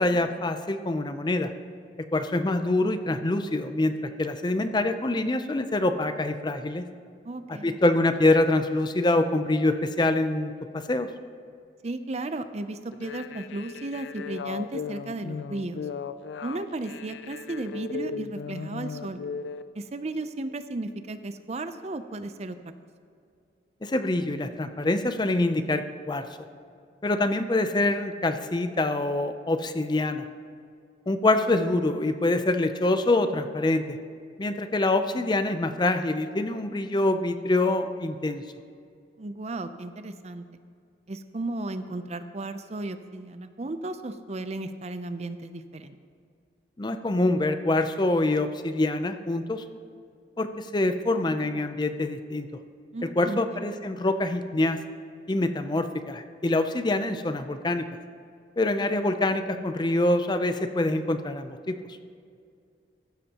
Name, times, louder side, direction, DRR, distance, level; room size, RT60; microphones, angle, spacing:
voice 1, 0.0-1.5 2.1-3.9 4.2-6.9 7.5-11.1 23.8-26.3 27.0-30.3 31.1-34.0 34.4-38.4 46.8-49.6 50.4-52.5 53.0-54.8 55.3-57.9 58.6-61.8, left 2 dB, 25° left, 9 dB, 0.5 m, -25 dB
voice 2, 7.2-7.8 11.8-15.9 16.4-19.2 19.7-22.6 39.2-40.5 41.1-46.0 52.9-53.7, right 2 dB, 35° right, 10 dB, 0.5 m, -34 dB
sound 1, 12.9-19.6, left 5 dB, 75° left, 0.4 m, -36 dB
15.0 x 12.5 x 2.9 m, 2.3 s
head